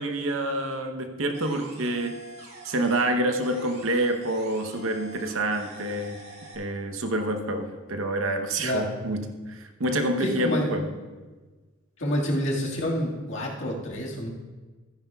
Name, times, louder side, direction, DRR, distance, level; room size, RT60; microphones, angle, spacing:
voice 1, 0.0-2.2 2.6-6.2 6.5-10.9, right 1 dB, 80° right, 5 dB, 0.9 m, -27 dB
sound 1, 1.3-3.2 3.4-6.6, right 2 dB, 55° right, 2.3 m, -45 dB
voice 2, 8.6-9.0 10.2-10.7 12.0-14.3, equal, 65° left, -3 dB, 1.9 m, -28 dB
14.5 x 9.8 x 2.3 m, 1.3 s
head